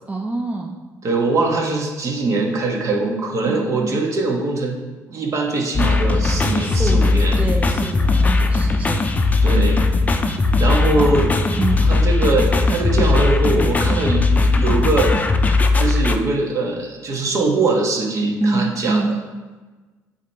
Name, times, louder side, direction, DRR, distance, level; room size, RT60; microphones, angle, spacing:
voice 1, 0.1-0.8 3.4-4.0 6.6-7.1 7.4-9.0 10.9-11.1 11.6-11.8 18.4-19.1, right 3 dB, 20° right, 0 dB, 0.7 m, -25 dB
voice 2, 1.0-4.8 5.1-7.3 9.4-9.8 10.6-11.3 11.8-15.1 15.7-19.0, right 3 dB, 50° right, 0 dB, 1.3 m, -22 dB
sound 1, 5.7-16.2, left 3 dB, 25° left, 0.6 m, -18 dB
8.1 x 3.0 x 4.6 m, 1.3 s
cardioid pair, 85°, 7 cm